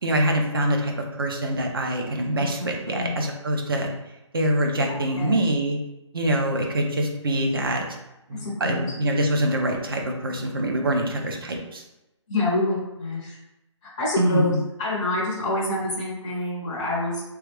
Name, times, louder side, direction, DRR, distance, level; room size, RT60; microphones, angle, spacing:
voice 1, 0.0-3.9 4.3-5.8 6.1-7.8 8.3-11.8 14.2-14.6, right 1 dB, 45° right, 2 dB, 0.6 m, -24 dB
voice 2, 2.3-3.2 5.2-5.4 8.3-8.9 12.3-13.4 13.8-17.2, left 2 dB, 10° left, -8 dB, 0.6 m, -27 dB
3.5 x 3.1 x 3.3 m, 0.95 s
hypercardioid pair, 175°, 16 cm